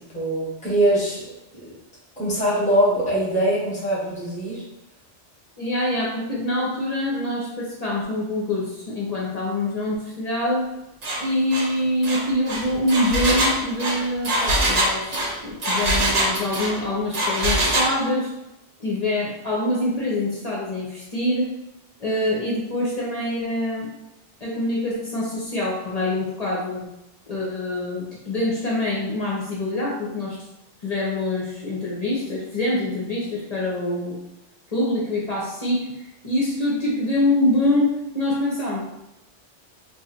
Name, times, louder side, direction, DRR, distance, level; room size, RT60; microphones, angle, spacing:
voice 1, 0.1-1.3 2.2-4.6, right 1 dB, 5° left, -6 dB, 0.9 m, -22 dB
voice 2, 5.6-10.7 11.2-18.3 18.8-21.5 22.0-23.9 24.4-26.9 27.3-30.4 30.8-34.2 34.7-35.9 36.2-38.8, left 1 dB, 40° left, -5 dB, 0.7 m, -25 dB
Engine, 11.0-11.2 11.5-11.7 12.0-16.8 17.1-17.9, right 1 dB, 40° right, 0.7 m, -23 dB
2.5 x 2.4 x 4.1 m, 0.91 s
omnidirectional pair, 1.2 m